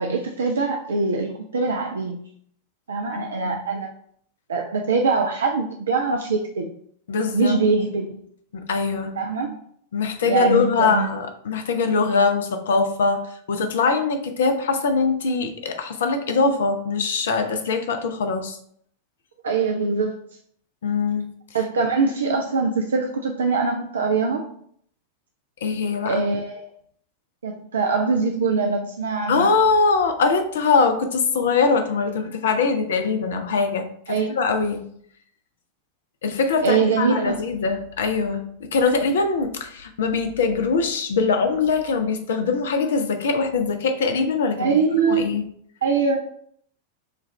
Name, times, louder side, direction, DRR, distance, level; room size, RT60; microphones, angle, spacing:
voice 1, 0.0-2.2 2.9-3.9 4.5-6.7 7.3-8.2 9.2-9.6 10.2-11.1 19.4-20.2 21.5-24.5 26.0-26.6 27.4-29.5 34.1-34.3 36.6-37.4 44.6-45.3 45.8-46.2, right 4 dB, 70° right, 3 dB, 0.4 m, -23 dB
voice 2, 7.1-7.6 8.5-9.2 9.9-18.6 20.8-21.2 25.6-26.3 29.3-34.8 36.2-44.7 45.1-45.4, left 4 dB, 60° left, 6 dB, 0.6 m, -22 dB
6.5 x 2.4 x 3.1 m, 0.64 s
figure-of-eight pair, 90°, 0 cm